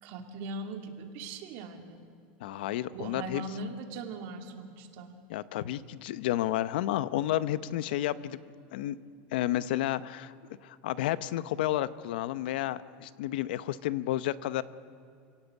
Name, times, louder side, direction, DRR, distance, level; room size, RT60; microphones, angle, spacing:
voice 1, 0.0-2.0 2.9-5.2, right 2 dB, 50° right, 5 dB, 2.5 m, -40 dB
voice 2, 2.4-3.4 5.3-8.4 8.7-9.0 9.3-10.3 10.6-14.6, left 13 dB, 80° left, 16 dB, 0.8 m, -31 dB
28.5 x 17.0 x 8.4 m, 2.4 s
supercardioid pair, 170°, 5 cm